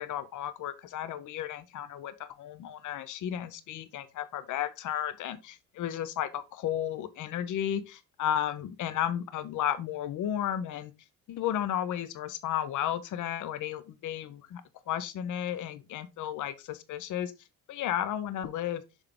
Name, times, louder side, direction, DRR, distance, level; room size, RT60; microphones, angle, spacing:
voice 1, 0.0-10.9 11.3-14.6 14.9-17.3 17.7-18.8, left 10 dB, 40° left, 0.8 m, -33 dB
6.6 x 4.8 x 3.5 m
figure-of-eight pair, 50°, 45 cm